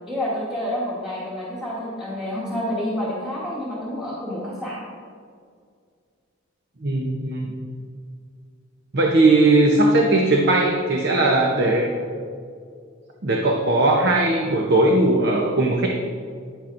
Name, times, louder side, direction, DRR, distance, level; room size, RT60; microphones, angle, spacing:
voice 1, 0.1-4.8, left 1 dB, ahead, -9 dB, 1.3 m, -28 dB
voice 2, 6.8-7.5 8.9-11.9 13.2-15.9, right 2 dB, 55° right, 1 dB, 0.8 m, -18 dB
10.0 x 9.8 x 2.6 m, 2.2 s
head